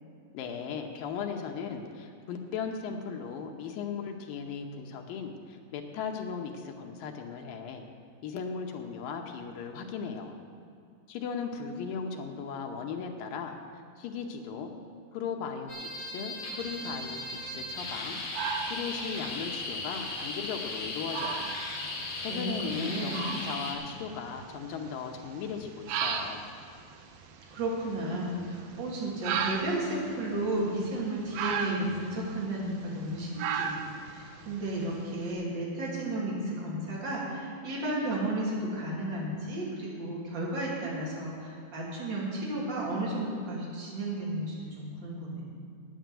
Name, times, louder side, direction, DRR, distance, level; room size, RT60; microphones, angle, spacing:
voice 1, 0.3-7.9 8.2-10.4 11.1-14.7 15.1-21.6 22.2-26.5, left 6 dB, 75° left, 3 dB, 2.4 m, -37 dB
sound 1, 15.7-23.8, left 2 dB, 50° left, 3.1 m, -37 dB
sound 2, 16.6-35.3, right 6 dB, 75° right, 2.5 m, -38 dB
voice 2, 22.3-23.3 27.5-33.8 34.1-45.4, right 1 dB, 30° right, -5 dB, 3.0 m, -33 dB
9.5 x 9.3 x 7.6 m, 2.4 s
omnidirectional pair, 4.3 m